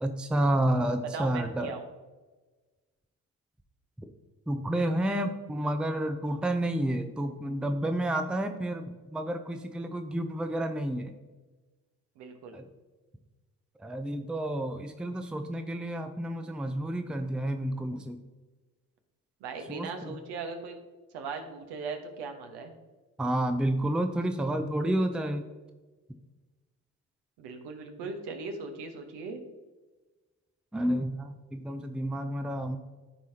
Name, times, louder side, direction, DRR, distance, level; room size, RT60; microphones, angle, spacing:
voice 1, 0.0-1.7 4.5-11.1 12.5-12.6 13.8-18.2 19.7-20.2 23.2-25.4 30.7-32.8, right 1 dB, ahead, 7 dB, 0.6 m, -30 dB
voice 2, 1.1-1.9 12.2-12.5 19.4-20.7 21.1-22.7 27.4-29.4, right 4 dB, 65° right, 5 dB, 1.3 m, -39 dB
13.5 x 4.8 x 2.9 m, 1.3 s
figure-of-eight pair, 50°, 44 cm